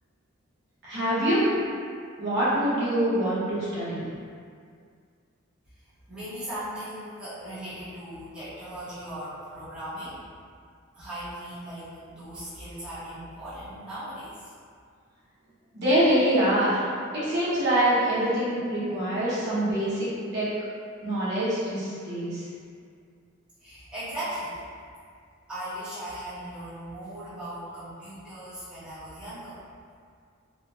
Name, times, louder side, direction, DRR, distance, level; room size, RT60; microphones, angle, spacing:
voice 1, 0.8-1.5 2.2-4.1 15.7-16.8 17.1-20.5 21.0-22.4, right 1 dB, 50° right, -12 dB, 0.9 m, -25 dB
voice 2, 6.1-10.2 10.9-14.5 23.6-24.7 25.5-29.6, right 1 dB, 5° right, -16 dB, 0.9 m, -38 dB
2.8 x 2.2 x 2.7 m, 2.2 s
head